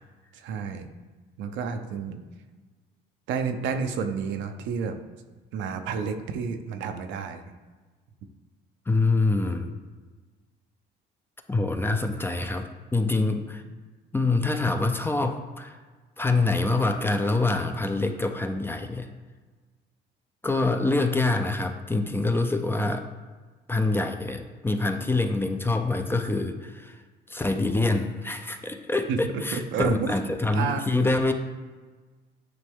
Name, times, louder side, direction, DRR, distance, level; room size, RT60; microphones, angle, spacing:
voice 1, 0.3-0.9 1.4-2.2 3.3-5.0 5.5-7.4 29.1-30.2 30.5-30.8, right 6 dB, 75° right, 7 dB, 0.7 m, -30 dB
voice 2, 8.9-9.7 11.5-13.6 14.1-15.8 16.2-19.1 20.4-23.0 23.7-27.0 27.3-31.3, left 2 dB, 10° left, 6 dB, 0.5 m, -25 dB
9.4 x 3.3 x 3.6 m, 1.3 s
cardioid pair, 110°, 19 cm